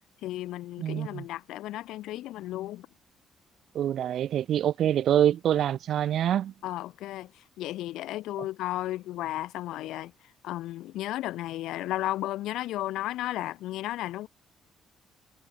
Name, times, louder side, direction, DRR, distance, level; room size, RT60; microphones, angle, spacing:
voice 1, 0.2-2.9 6.6-7.3 7.6-10.1 10.4-14.3, left 15 dB, 80° left, 1.6 m, -34 dB
voice 2, 0.8-1.2 3.7-6.5, right 10 dB, 55° right, 0.6 m, -25 dB
cardioid pair, 160°, 0 cm